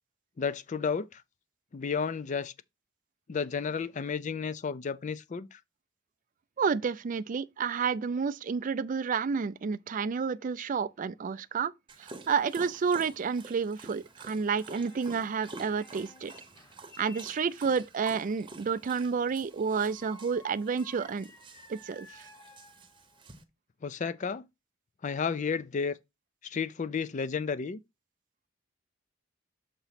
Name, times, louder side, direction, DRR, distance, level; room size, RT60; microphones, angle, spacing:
voice 1, 0.4-1.2 1.7-2.5 3.3-5.6 23.8-24.4 25.0-26.0 26.4-27.8, left 5 dB, 35° left, 0.4 m, -32 dB
voice 2, 6.6-11.7 12.0-16.3 17.0-21.3 21.7-22.3, right 5 dB, 40° right, 0.4 m, -30 dB
Dog, 11.9-23.4, right 3 dB, 25° right, 0.8 m, -49 dB
sound 1, 14.6-18.0 19.5-23.2, left 2 dB, 20° left, 0.9 m, -55 dB
6.7 x 3.0 x 5.7 m
head